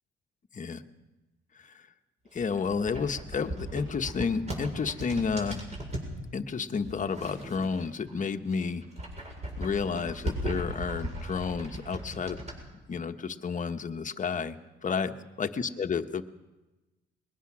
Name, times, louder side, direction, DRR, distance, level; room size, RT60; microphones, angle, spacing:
voice 1, 2.3-5.6 6.3-8.8 9.6-12.4 12.9-14.6 14.8-16.2, left 5 dB, 40° left, 7 dB, 1.3 m, -31 dB
sound 1, 2.3-6.1 6.8-8.1 8.5-12.6, right 1 dB, 35° right, 7.4 m, -37 dB
22.5 x 19.5 x 6.2 m, 1.1 s
cardioid pair, 90°, 20 cm